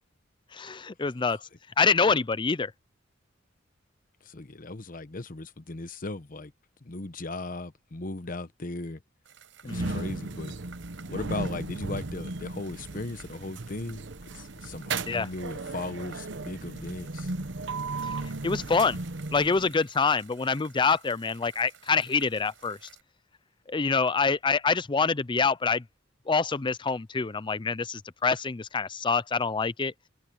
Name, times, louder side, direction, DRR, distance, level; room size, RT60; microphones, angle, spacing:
voice 1, 0.5-1.4 1.8-2.7 9.6-9.9 15.1-15.3 18.0-18.2 18.4-19.0 19.3-22.8 23.7-25.8 26.3-29.9, left 4 dB, 25° left, 0.5 m, -26 dB
voice 2, 4.2-6.5 6.8-9.0 9.7-10.5 11.1-14.0 14.3-17.3, left 2 dB, 45° left, 1.0 m, -37 dB
sound 1, 9.2-23.0, right 8 dB, 85° right, 5.0 m, -54 dB
sound 2, 9.6-19.8, right 3 dB, 70° right, 1.0 m, -36 dB
open air
head